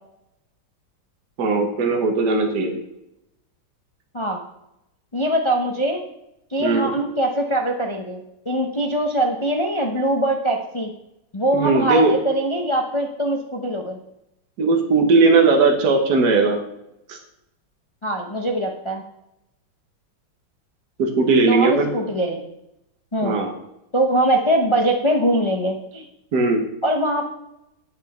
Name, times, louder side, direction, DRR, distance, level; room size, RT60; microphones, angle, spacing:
voice 1, 1.4-2.7 6.6-6.9 11.5-12.2 14.6-16.6 17.1-17.2 21.0-21.9 23.2-23.5 26.3-26.6, right 3 dB, 55° right, 2 dB, 1.7 m, -18 dB
voice 2, 5.1-6.0 6.5-10.9 11.3-14.0 18.0-19.0 21.5-22.4 23.1-23.4 23.9-26.0 26.8-27.3, right 1 dB, 35° left, 2 dB, 0.5 m, -22 dB
8.9 x 8.1 x 4.3 m, 0.83 s
omnidirectional pair, 2.1 m